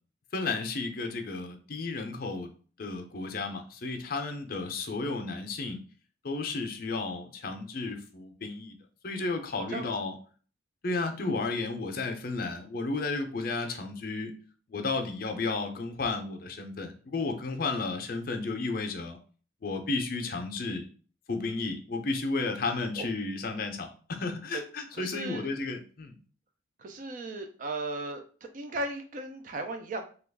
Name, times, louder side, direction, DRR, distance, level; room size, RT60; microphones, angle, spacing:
voice 1, 0.3-2.5 2.8-5.8 6.2-8.7 9.0-10.1 10.8-14.3 14.7-19.2 19.6-20.8 21.3-26.1, left 3 dB, 50° left, 5 dB, 0.5 m, -33 dB
voice 2, 24.9-25.5 26.8-28.2 28.5-30.0, right 2 dB, 45° right, 6 dB, 0.4 m, -36 dB
2.9 x 2.3 x 3.3 m, 0.40 s
head